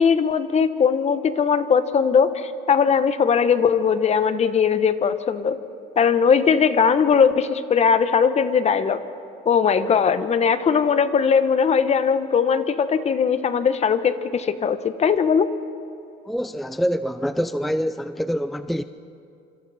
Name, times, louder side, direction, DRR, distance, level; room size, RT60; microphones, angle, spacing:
voice 1, 0.0-5.6 6.0-9.0 9.4-15.5, left 6 dB, 40° left, 11 dB, 1.1 m, -19 dB
voice 2, 16.3-18.8, equal, ahead, 11 dB, 0.5 m, -25 dB
26.5 x 25.5 x 4.3 m, 2.7 s
cardioid pair, 110°, 17 cm